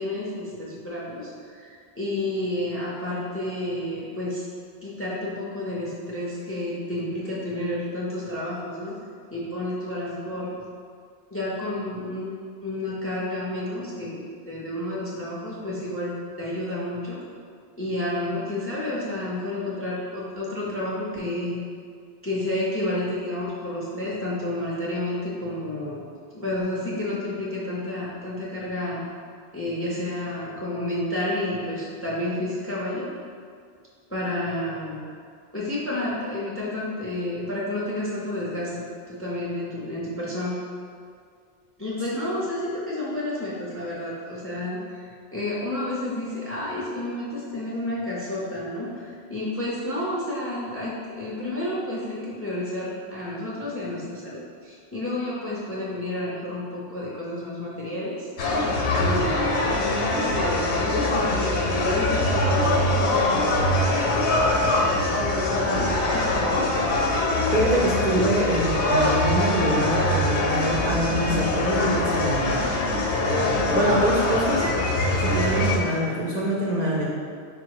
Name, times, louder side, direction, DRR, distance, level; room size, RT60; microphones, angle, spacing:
voice 1, 0.0-4.4 4.8-8.9 9.3-10.5 11.3-12.3 12.6-16.1 16.4-17.2 17.8-21.6 22.2-26.0 26.3-29.0 29.5-33.1 34.1-35.0 35.5-40.6 41.8-58.3 59.0-62.9 64.1-66.3, left 1 dB, 15° left, -5 dB, 0.4 m, -30 dB
sound 1, 58.4-75.8, left 1 dB, 75° left, 0.9 m, -23 dB
voice 2, 67.5-72.7 73.7-74.7 75.2-77.0, right 1 dB, 50° right, -5 dB, 0.5 m, -25 dB
5.0 x 2.0 x 4.6 m, 2.2 s
omnidirectional pair, 1.2 m